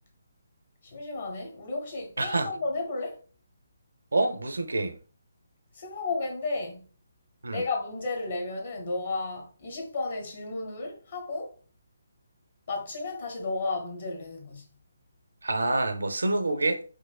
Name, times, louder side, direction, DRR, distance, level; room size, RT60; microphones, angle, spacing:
voice 1, 0.8-3.2 5.7-6.8 7.5-11.6 12.7-14.6, left 3 dB, 45° left, 0.9 m, -33 dB
voice 2, 2.2-2.6 4.1-5.0 7.4-7.6 15.4-16.8, right 2 dB, 65° right, 0.5 m, -27 dB
4.5 x 2.1 x 2.2 m
figure-of-eight pair, 140°, 0 cm